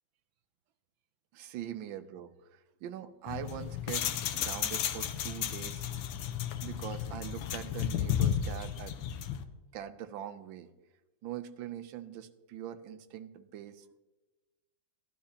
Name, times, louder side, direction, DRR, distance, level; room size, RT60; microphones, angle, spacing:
voice 1, 1.3-4.1 4.3-5.8 6.6-9.0 9.7-10.7 11.2-14.0, right 10 dB, 80° right, 11 dB, 1.4 m, -42 dB
sound 1, 3.3-9.4, left 9 dB, 75° left, 1.4 m, -33 dB
15.0 x 11.5 x 2.8 m, 1.1 s
omnidirectional pair, 2.2 m